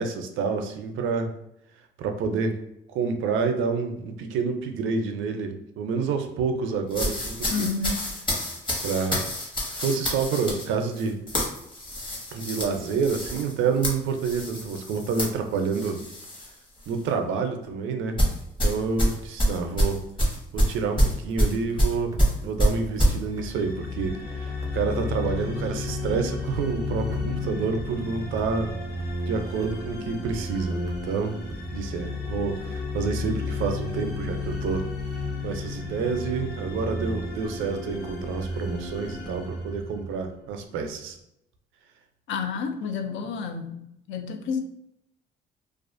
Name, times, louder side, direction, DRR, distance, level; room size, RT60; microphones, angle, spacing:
voice 1, 0.0-1.4 2.0-2.6 2.9-7.7 8.8-9.3 9.7-11.2 12.3-16.0 16.9-18.2 18.6-20.0 20.5-28.8 29.2-31.4 31.7-34.9 35.4-41.2, right 5 dB, 80° right, 5 dB, 0.4 m, -28 dB
sound 1, 6.9-16.5 16.8-17.1 18.2-23.2, equal, 25° left, 0.9 m, -26 dB
voice 2, 7.5-8.1 27.2-27.3 42.3-44.6, left 5 dB, 70° left, 6 dB, 0.4 m, -30 dB
sound 2, 22.0-31.6, right 2 dB, 15° right, 0.4 m, -42 dB
sound 3, 23.3-40.5, left 3 dB, 55° left, 0.9 m, -33 dB
2.4 x 2.3 x 2.5 m, 0.81 s
cardioid pair, 90°, 20 cm